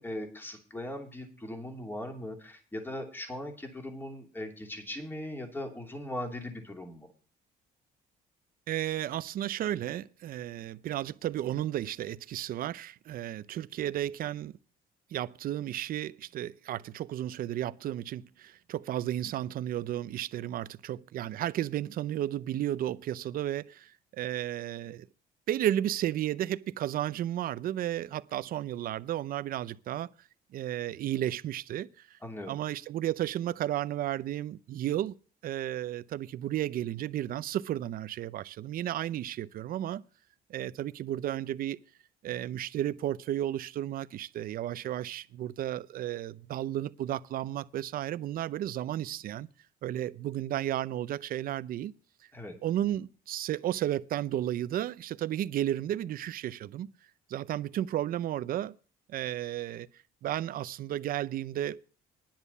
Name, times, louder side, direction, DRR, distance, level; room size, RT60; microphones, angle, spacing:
voice 1, 0.0-7.1 32.2-32.5 52.3-52.5, left 1 dB, 10° left, 2.9 m, -39 dB
voice 2, 8.7-14.5 15.1-25.1 25.5-30.1 30.5-32.2 32.5-35.1 35.4-40.0 40.5-41.8 42.2-49.5 49.8-51.9 52.6-56.9 57.3-58.7 59.1-59.9 60.2-61.8, right 12 dB, 60° right, 0.6 m, -33 dB
10.5 x 7.2 x 8.1 m
cardioid pair, 110°, 17 cm